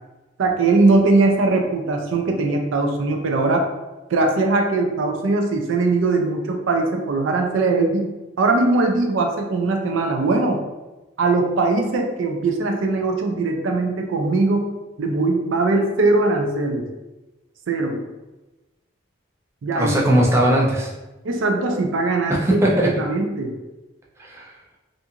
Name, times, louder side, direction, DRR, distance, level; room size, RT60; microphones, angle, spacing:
voice 1, 0.4-3.7 4.1-8.1 8.4-10.6 11.2-14.7 15.0-16.9 17.7-18.0 19.6-20.0 21.2-23.5, right 3 dB, 90° right, 3 dB, 0.4 m, -20 dB
voice 2, 19.8-20.9 22.3-22.9 24.2-24.5, right 1 dB, 15° right, -3 dB, 0.4 m, -19 dB
2.5 x 2.4 x 2.8 m, 1.1 s
head